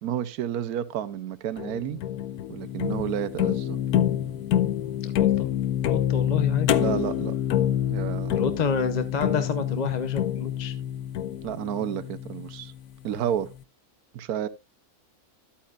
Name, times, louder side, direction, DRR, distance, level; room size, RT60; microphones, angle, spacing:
voice 1, 0.0-2.0 2.5-3.8 6.8-7.4 7.9-8.5 11.4-12.7 13.0-13.6 14.1-14.5, right 10 dB, 85° right, 1.2 m, -30 dB
sound 1, 1.6-12.8, left 11 dB, 85° left, 1.1 m, -27 dB
voice 2, 5.0-5.5 5.8-6.7 8.3-10.8, left 6 dB, 40° left, 0.7 m, -29 dB
11.5 x 8.7 x 2.4 m
omnidirectional pair, 1.6 m